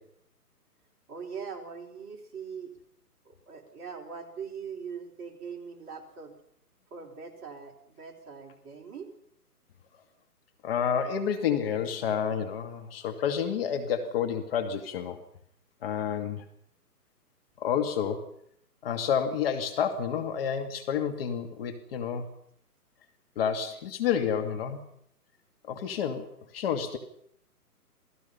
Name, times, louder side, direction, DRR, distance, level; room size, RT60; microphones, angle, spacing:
voice 1, 1.1-2.7 3.2-6.3 6.9-9.1, right 6 dB, 20° right, -2 dB, 4.0 m, -41 dB
voice 2, 10.6-15.2 15.8-16.4 17.6-18.3 18.8-22.3 23.4-24.8 25.7-27.0, left 8 dB, 35° left, 6 dB, 2.3 m, -29 dB
28.0 x 18.5 x 5.8 m, 0.69 s
hypercardioid pair, 145°, 48 cm